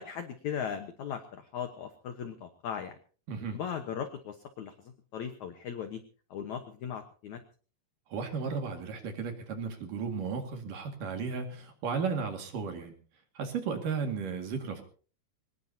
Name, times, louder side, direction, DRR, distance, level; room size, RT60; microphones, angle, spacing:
voice 1, 0.0-3.0 3.5-6.0 6.3-7.4, left 8 dB, 80° left, 7 dB, 1.7 m, -38 dB
voice 2, 3.3-3.6 8.1-12.9 13.3-14.8, right 5 dB, 55° right, 5 dB, 3.2 m, -34 dB
23.5 x 20.0 x 2.8 m, 0.40 s
omnidirectional pair, 5.2 m